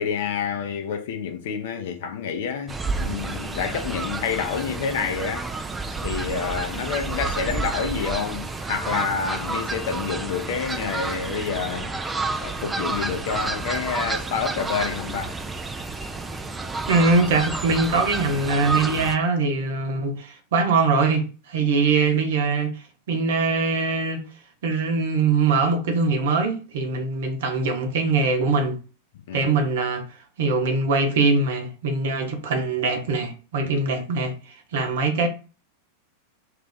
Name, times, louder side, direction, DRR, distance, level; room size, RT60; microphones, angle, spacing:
voice 1, 0.0-5.5 6.0-12.0 12.4-15.3 21.6-21.7 29.3-29.5 33.6-33.7, left 6 dB, 55° left, 0.6 m, -28 dB
Fowl, 2.7-19.2, right 3 dB, 10° right, 0.3 m, -30 dB
voice 2, 16.9-22.7 23.1-24.2 24.6-28.8 29.3-30.0 30.4-34.3 34.7-35.3, right 4 dB, 55° right, 0.7 m, -22 dB
2.4 x 2.4 x 3.8 m
figure-of-eight pair, 90°, 0 cm